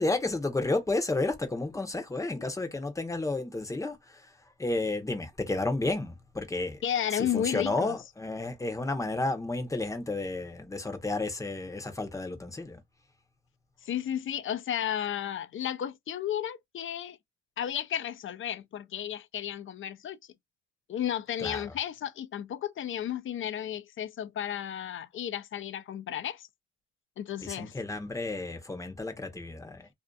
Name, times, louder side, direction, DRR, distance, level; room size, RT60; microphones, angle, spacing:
voice 1, 0.0-4.3 4.6-6.8 7.1-12.8 21.4-21.7 27.4-29.9, left 2 dB, 10° left, 0.8 m, -32 dB
voice 2, 6.8-8.0 13.8-17.2 17.6-20.2 20.9-26.4 27.2-27.7, left 10 dB, 45° left, 0.5 m, -33 dB
2.6 x 2.4 x 2.3 m
cardioid pair, 90°, 30 cm